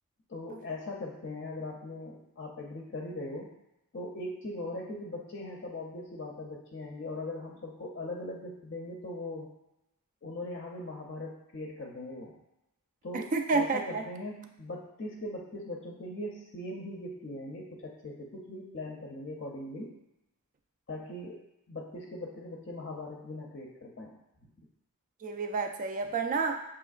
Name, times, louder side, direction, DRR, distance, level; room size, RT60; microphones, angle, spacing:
voice 1, 0.3-3.5 3.9-9.5 10.2-12.4 13.0-19.9 20.9-24.2 24.6-24.7, left 2 dB, 45° left, 0 dB, 0.5 m, -40 dB
voice 2, 13.1-14.0 25.2-26.6, right 4 dB, 35° right, 5 dB, 0.3 m, -30 dB
6.1 x 2.9 x 2.4 m, 0.91 s
head